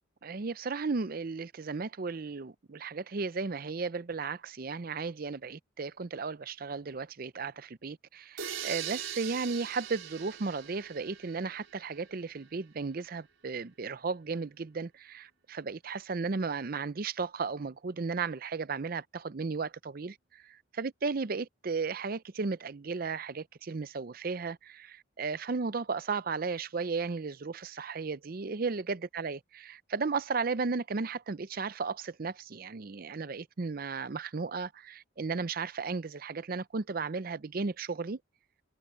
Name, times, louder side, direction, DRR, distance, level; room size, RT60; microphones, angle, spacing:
voice 1, 0.2-38.2, right 4 dB, 50° right, 0.6 m, -35 dB
sound 1, 8.4-12.1, right 9 dB, 90° right, 4.2 m, -41 dB
head